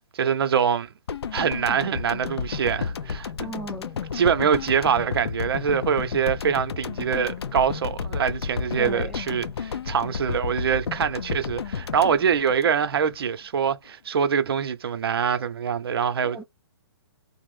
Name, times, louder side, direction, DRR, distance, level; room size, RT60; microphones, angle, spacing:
voice 1, 0.1-0.9 1.3-3.3 4.1-16.4, right 7 dB, 65° right, 0.6 m, -24 dB
sound 1, 1.1-13.3 13.5-13.7, left 6 dB, 75° left, 0.5 m, -32 dB
voice 2, 3.4-4.0 8.8-9.2 16.2-16.4, right 1 dB, ahead, 0.6 m, -36 dB
2.9 x 2.0 x 3.2 m
hypercardioid pair, 140°, 14 cm